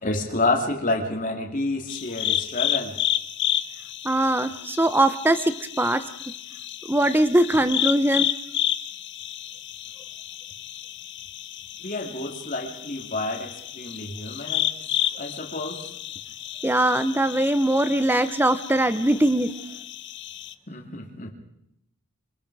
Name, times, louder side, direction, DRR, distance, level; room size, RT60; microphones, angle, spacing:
voice 1, 0.0-3.0 11.8-14.7 15.1-15.9 20.7-21.3, left 2 dB, 35° left, 3 dB, 2.9 m, -29 dB
sound 1, 1.9-20.5, left 11 dB, 50° left, 0.8 m, -31 dB
voice 2, 4.0-6.0 6.9-8.3 16.6-19.5, right 1 dB, 10° right, 12 dB, 0.9 m, -21 dB
26.0 x 25.0 x 4.9 m, 0.79 s
head